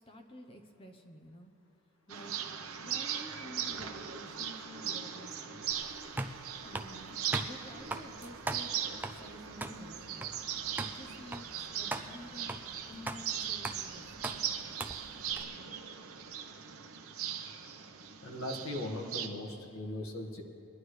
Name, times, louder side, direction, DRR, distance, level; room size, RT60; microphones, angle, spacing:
voice 1, 0.0-1.5 2.1-2.4 2.8-5.6 6.6-10.3 10.7-11.5 11.7-12.6 12.8-14.3, left 1 dB, 25° left, 4 dB, 0.8 m, -51 dB
sound 1, 2.1-19.3, right 8 dB, 80° right, 0.9 m, -39 dB
sound 2, 5.7-15.4, right 2 dB, 10° right, 0.3 m, -41 dB
voice 2, 18.2-20.4, left 1 dB, 70° left, 2 dB, 1.7 m, -39 dB
23.0 x 11.0 x 3.3 m, 2.8 s
head